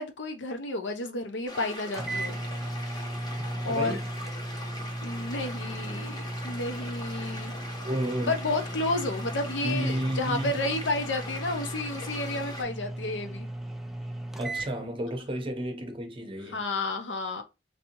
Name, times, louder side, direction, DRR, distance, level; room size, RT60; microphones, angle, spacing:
voice 1, 0.0-2.4 2.8-3.0 3.6-4.0 5.0-7.5 8.3-13.5 16.5-17.4, left 2 dB, 75° left, 0.7 m, -31 dB
sound 1, 1.5-12.6, left 1 dB, 25° left, 0.8 m, -41 dB
sound 2, 1.9-14.7, right 1 dB, ahead, 0.3 m, -36 dB
voice 2, 3.4-4.1 7.8-8.4 9.6-10.5 14.4-16.7, right 1 dB, 30° right, 0.7 m, -32 dB
3.3 x 2.7 x 2.9 m
head